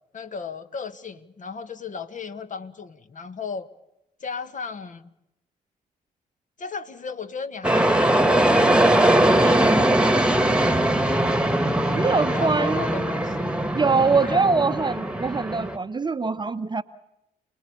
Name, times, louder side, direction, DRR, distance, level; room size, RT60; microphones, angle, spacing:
voice 1, 0.1-3.7 4.2-5.1 6.6-8.9 9.4-10.0 12.3-13.6 14.2-14.4, left 5 dB, 40° left, 10 dB, 1.7 m, -35 dB
sound 1, 7.6-15.8, right 1 dB, 5° right, 1.9 m, -21 dB
voice 2, 9.2-9.9 11.9-12.8 13.7-16.8, right 4 dB, 20° right, 12 dB, 1.0 m, -23 dB
28.5 x 20.5 x 7.0 m, 0.88 s
figure-of-eight pair, 40°, 20 cm